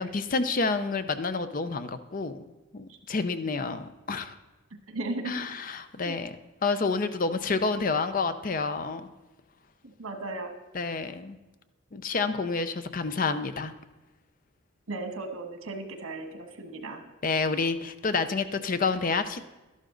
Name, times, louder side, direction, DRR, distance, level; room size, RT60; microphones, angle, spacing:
voice 1, 0.0-2.4 2.7-4.3 5.2-6.4 6.6-9.1 10.7-11.4 11.9-13.7 17.2-19.4, left 4 dB, 40° left, 11 dB, 0.5 m, -29 dB
voice 2, 4.9-5.3 6.0-6.2 10.0-10.5 14.9-17.1, right 2 dB, 85° right, 6 dB, 1.4 m, -36 dB
12.0 x 11.5 x 3.8 m, 1.1 s
head